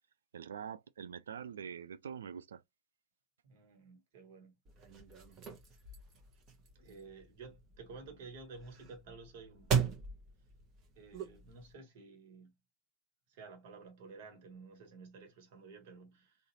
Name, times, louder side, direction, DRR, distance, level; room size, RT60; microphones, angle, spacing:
voice 1, 0.3-2.6, right 7 dB, 65° right, 0.4 m, -44 dB
voice 2, 3.4-4.5 6.7-10.0 11.0-12.5 13.3-16.4, right 4 dB, 50° right, 1.5 m, -52 dB
sound 1, 4.7-11.7, right 6 dB, 30° right, 1.1 m, -39 dB
3.9 x 2.5 x 3.0 m
figure-of-eight pair, 90°, 0 cm